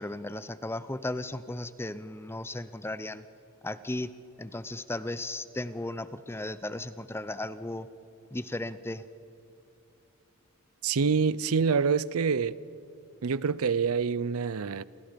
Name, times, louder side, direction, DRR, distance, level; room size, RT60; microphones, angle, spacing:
voice 1, 0.0-3.2 3.6-4.1 4.4-7.9 8.3-9.0, left 1 dB, 10° left, 0.7 m, -35 dB
voice 2, 10.8-12.6 13.2-14.8, right 5 dB, 75° right, 0.6 m, -26 dB
29.0 x 28.5 x 5.2 m
head